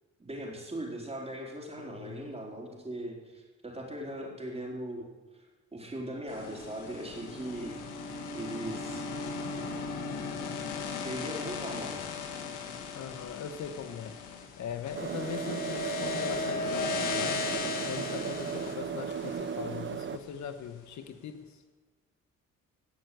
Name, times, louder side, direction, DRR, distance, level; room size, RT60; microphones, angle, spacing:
voice 1, 0.2-5.5 5.7-9.1 11.0-12.0, right 1 dB, 20° right, -1 dB, 4.3 m, -39 dB
voice 2, 1.8-2.2 12.9-14.2 14.6-17.4 17.8-21.6, left 7 dB, 70° left, 9 dB, 1.1 m, -40 dB
sound 1, 6.3-20.5, left 4 dB, 90° left, 1.8 m, -37 dB
sound 2, 14.9-20.2, right 7 dB, 40° right, 0.8 m, -36 dB
18.0 x 6.7 x 7.8 m, 1.3 s
cardioid pair, 90°, 30 cm